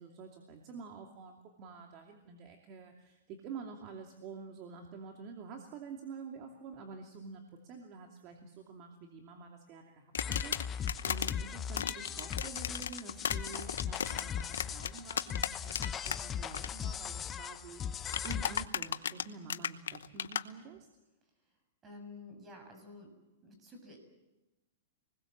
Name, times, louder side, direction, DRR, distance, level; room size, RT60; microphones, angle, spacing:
voice 1, 0.0-20.9, right 5 dB, 35° right, 2 dB, 2.7 m, -48 dB
sound 1, 10.1-11.3 11.7-16.2 16.4-16.7 18.1-20.4, left 8 dB, 85° left, 1.0 m, -35 dB
sound 2, 10.2-18.7, left 8 dB, 20° left, 0.7 m, -39 dB
voice 2, 21.8-23.1 23.4-24.0, left 2 dB, 20° right, 5 dB, 6.8 m, -50 dB
27.0 x 20.5 x 7.5 m, 1.1 s
hypercardioid pair, 140°, 0 cm